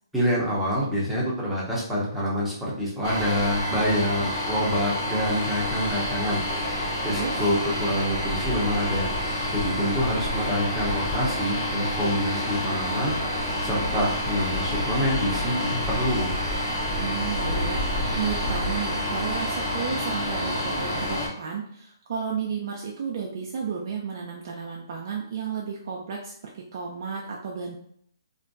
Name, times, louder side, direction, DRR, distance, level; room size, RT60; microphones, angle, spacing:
voice 1, 0.1-6.4 6.8-9.1 9.5-13.1 13.6-16.3, equal, ahead, -8 dB, 0.7 m, -26 dB
sound 1, 3.0-21.3, left 1 dB, 50° left, 0.9 m, -28 dB
voice 2, 7.1-7.4 17.0-27.7, right 6 dB, 55° right, -1 dB, 0.4 m, -33 dB
2.5 x 2.1 x 2.5 m, 0.66 s
hypercardioid pair, 140°, 2 cm